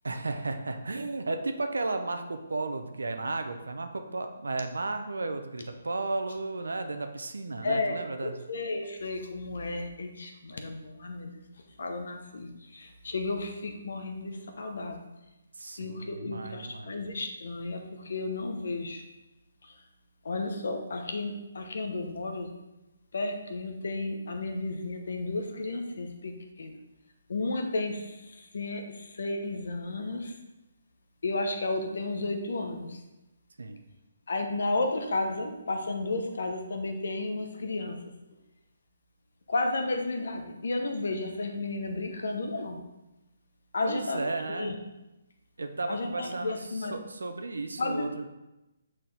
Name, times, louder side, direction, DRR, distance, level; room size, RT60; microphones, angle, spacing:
voice 1, 0.0-8.3 15.6-16.9 33.6-33.8 43.8-44.7 45.6-48.3, right 3 dB, 80° right, 7 dB, 0.8 m, -34 dB
voice 2, 7.6-11.4 11.8-15.0 15.8-19.0 20.2-22.5 23.1-26.8 27.3-30.3 31.2-33.0 34.3-38.0 39.5-42.8 43.7-44.8 45.9-46.9 47.8-48.3, left 2 dB, 65° left, 4 dB, 1.1 m, -33 dB
6.3 x 5.6 x 3.5 m, 0.99 s
figure-of-eight pair, 145°, 0 cm